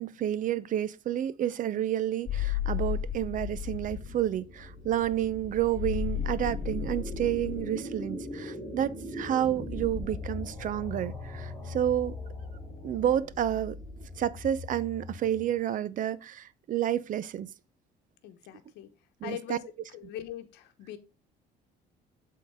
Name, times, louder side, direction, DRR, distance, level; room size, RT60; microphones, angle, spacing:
voice 1, 0.0-12.1 12.8-17.5 19.2-19.6, right 11 dB, 50° right, 0.6 m, -30 dB
sound 1, 2.3-4.1 5.7-7.7, left 9 dB, 35° left, 2.0 m, -33 dB
sound 2, 2.9-15.6, left 2 dB, 15° left, 3.2 m, -41 dB
voice 2, 18.2-18.9 19.2-19.6 19.9-21.0, left 12 dB, 85° left, 0.9 m, -41 dB
7.7 x 3.8 x 4.8 m
cardioid pair, 110°, 17 cm